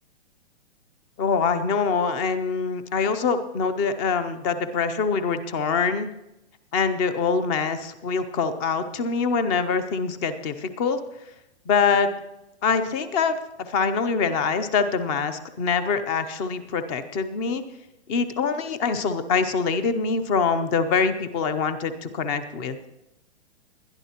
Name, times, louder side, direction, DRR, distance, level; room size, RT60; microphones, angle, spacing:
voice 1, 1.2-6.1 6.7-11.0 11.7-12.1 12.6-17.6 18.1-22.8, left 5 dB, 20° left, 11 dB, 0.5 m, -24 dB
20.5 x 11.0 x 2.9 m, 0.90 s
hypercardioid pair, 150°, 33 cm